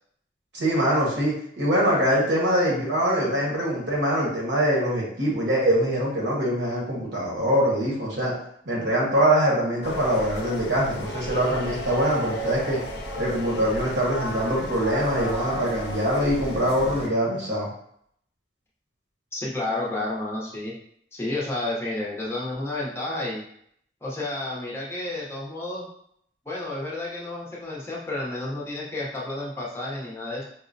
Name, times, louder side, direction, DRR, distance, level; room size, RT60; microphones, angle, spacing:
voice 1, 0.5-8.3 8.6-12.8 13.2-17.7, equal, 90° right, -4 dB, 1.2 m, -23 dB
sound 1, 9.8-17.1, equal, 75° left, 0.5 m, -33 dB
voice 2, 19.3-20.7 21.1-23.4 24.0-25.9 26.4-30.4, left 2 dB, 15° left, -5 dB, 0.6 m, -31 dB
4.8 x 2.0 x 2.6 m, 0.69 s
head